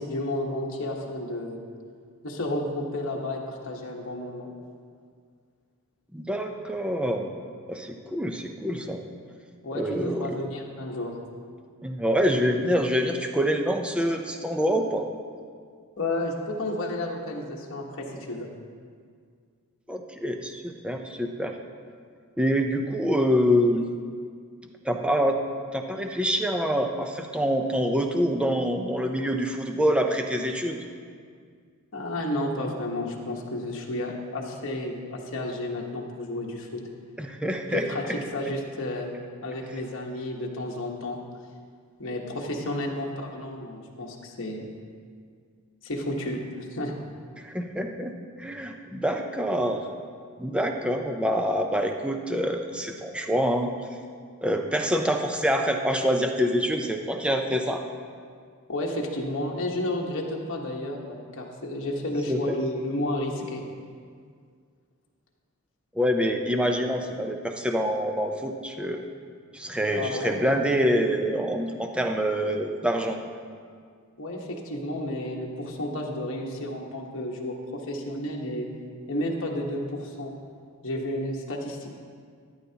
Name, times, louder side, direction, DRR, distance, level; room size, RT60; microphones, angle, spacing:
voice 1, 0.0-1.6 2.2-4.5 9.6-11.2 16.0-18.5 31.9-36.8 37.7-38.0 38.3-39.1 39.4-41.2 42.0-44.7 45.8-46.4 46.7-46.9 58.7-63.6 69.9-70.5 74.2-78.7 79.1-80.3 80.8-81.9, left 1 dB, 60° left, -2 dB, 1.3 m, -31 dB
voice 2, 6.1-7.3 7.7-9.0 9.7-10.4 11.8-15.1 19.9-21.5 22.4-23.8 24.8-25.4 25.7-30.8 37.2-38.2 47.4-48.1 48.4-49.9 50.4-53.7 54.4-57.8 62.3-62.6 65.9-69.0 69.5-73.2, equal, 5° right, 4 dB, 0.6 m, -26 dB
13.0 x 11.5 x 2.9 m, 2.1 s
head